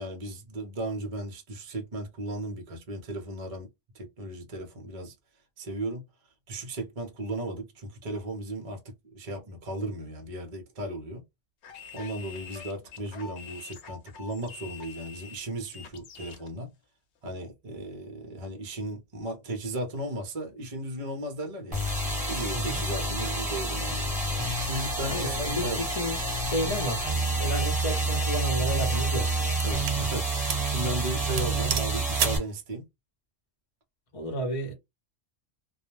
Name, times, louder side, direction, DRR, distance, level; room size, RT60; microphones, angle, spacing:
voice 1, 0.0-3.7 3.9-5.1 5.6-6.0 6.5-8.8 9.1-11.2 11.9-16.7 17.2-21.8 22.3-24.0 24.6-25.8 29.6-32.8, right 1 dB, 35° right, 0.7 m, -35 dB
sound 1, 11.6-16.5, left 6 dB, 70° left, 0.9 m, -45 dB
sound 2, 21.7-32.4, right 2 dB, 5° right, 1.2 m, -28 dB
voice 2, 25.0-26.2 26.5-27.1 27.4-29.3 34.1-34.7, right 1 dB, 30° left, 0.8 m, -31 dB
sound 3, 27.8-28.1 28.8-30.0 30.5-30.7 31.0-31.1 31.4-32.5, right 8 dB, 90° right, 0.9 m, -32 dB
2.3 x 2.1 x 3.1 m
omnidirectional pair, 1.3 m